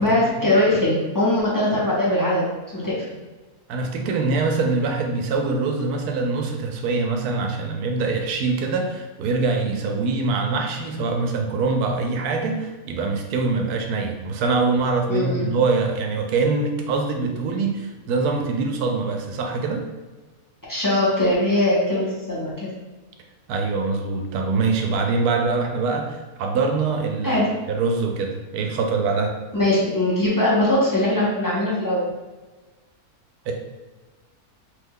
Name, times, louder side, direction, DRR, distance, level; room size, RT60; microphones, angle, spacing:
voice 1, 0.0-2.4 2.7-3.1 15.1-15.5 20.7-22.7 27.2-27.5 29.5-32.1, left 1 dB, 25° left, -7 dB, 0.4 m, -21 dB
voice 2, 3.7-19.8 23.5-27.4 27.7-29.3 33.5-33.6, right 4 dB, 85° right, 3 dB, 1.1 m, -24 dB
3.2 x 2.2 x 3.5 m, 1.3 s
omnidirectional pair, 1.6 m